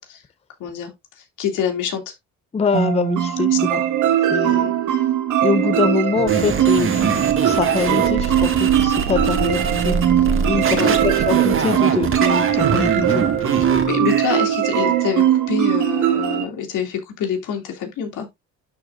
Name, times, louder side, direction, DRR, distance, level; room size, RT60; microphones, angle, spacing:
voice 1, 0.6-2.1 3.5-3.9 4.4-4.7 7.1-7.2 10.7-11.0 13.5-18.3, left 8 dB, 85° left, 2.5 m, -26 dB
voice 2, 2.5-3.7 4.3-4.7 5.4-7.1 7.5-10.0 10.5-13.3, left 5 dB, 20° left, 0.5 m, -24 dB
sound 1, 2.7-16.4, right 11 dB, 75° right, 1.7 m, -20 dB
sound 2, 6.3-14.3, right 5 dB, 45° right, 1.8 m, -23 dB
12.0 x 4.5 x 2.4 m
cardioid pair, 90°, 30 cm